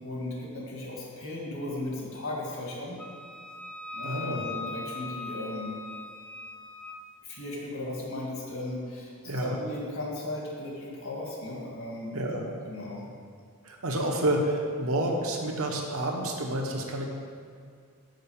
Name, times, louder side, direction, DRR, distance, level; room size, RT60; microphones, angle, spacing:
voice 1, 0.0-3.0 3.9-5.8 7.2-12.2 12.6-13.0, left 1 dB, 65° left, -3 dB, 2.0 m, -36 dB
Wind instrument woodwind instrument, 3.0-7.0, left 3 dB, 5° left, 0.4 m, -40 dB
voice 2, 4.0-4.4 9.2-9.6 12.1-12.5 13.6-17.1, right 1 dB, 75° right, 0 dB, 1.2 m, -29 dB
6.5 x 5.4 x 7.1 m, 2.1 s
head